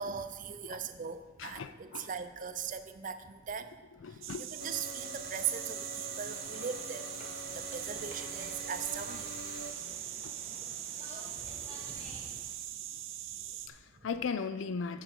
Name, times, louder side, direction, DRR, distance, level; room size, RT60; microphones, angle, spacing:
voice 1, 0.0-3.7 4.0-7.1 7.5-9.4 10.5-10.6 10.9-11.0 12.7-13.0 13.3-13.6, right 7 dB, 40° right, 10 dB, 0.5 m, -40 dB
voice 2, 1.4-2.1 4.0-4.4 10.2-10.3 13.7-15.0, left 5 dB, 75° left, 11 dB, 0.4 m, -37 dB
sound 1, 4.2-13.7, right 11 dB, 90° right, 0.6 m, -41 dB
sound 2, 4.6-9.7, left 2 dB, 50° left, 1.0 m, -46 dB
sound 3, 6.2-12.6, left 1 dB, 35° left, 1.5 m, -51 dB
14.5 x 5.1 x 4.5 m, 1.3 s
head